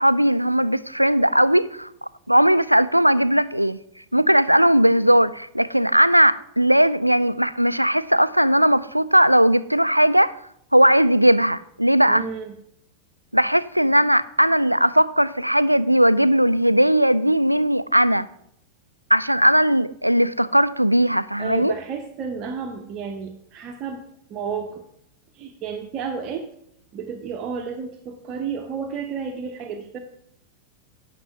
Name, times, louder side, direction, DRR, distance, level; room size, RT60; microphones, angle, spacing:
voice 1, 0.0-1.9 2.3-3.8 4.1-10.3 10.7-12.2 13.3-18.3 19.1-21.7, equal, 90° right, 0.3 m, -18 dB
voice 2, 12.1-12.5 21.4-24.0 24.3-24.8 25.3-26.5 26.9-30.0, right 6 dB, 35° right, 0.8 m, -31 dB
9.9 x 5.9 x 5.9 m
figure-of-eight pair, 90°, 0 cm